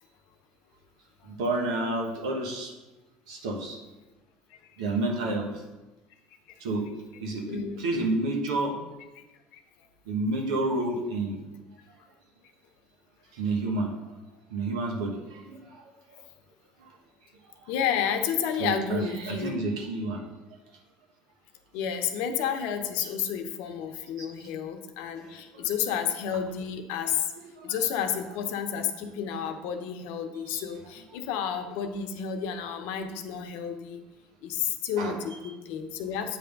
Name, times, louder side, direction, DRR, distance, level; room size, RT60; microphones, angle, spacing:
voice 1, 1.2-2.7 3.3-3.8 4.8-5.6 6.6-6.9 7.2-8.8 10.1-11.4 13.3-13.9 14.5-15.8 16.1-16.2 16.8-16.9 17.6-17.7 18.6-20.3 24.2-24.3 25.1-25.7 27.6-27.8 30.5-30.6 35.0-35.2, right 2 dB, 90° right, 1 dB, 1.3 m, -30 dB
voice 2, 7.5-7.9 9.2-9.3 9.5-9.6 17.7-19.7 21.7-27.3 27.6-34.0 34.4-36.4, left 8 dB, 75° left, 7 dB, 0.8 m, -31 dB
7.9 x 3.4 x 5.2 m, 1.1 s
supercardioid pair, 85°, 3 cm